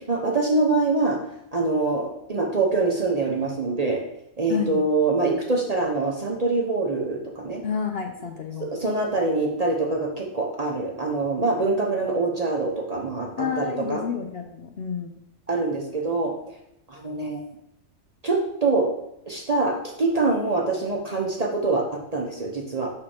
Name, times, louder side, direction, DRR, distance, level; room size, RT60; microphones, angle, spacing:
voice 1, 0.1-1.2 1.5-4.0 4.4-7.6 8.8-13.3 13.6-14.0 15.5-16.3 16.9-17.4 18.2-18.9 19.3-22.9, right 3 dB, 35° right, 0 dB, 0.7 m, -24 dB
voice 2, 4.5-4.8 7.6-8.8 13.4-15.2, left 6 dB, 60° left, 4 dB, 0.7 m, -30 dB
6.1 x 4.9 x 4.3 m, 0.81 s
omnidirectional pair, 1.5 m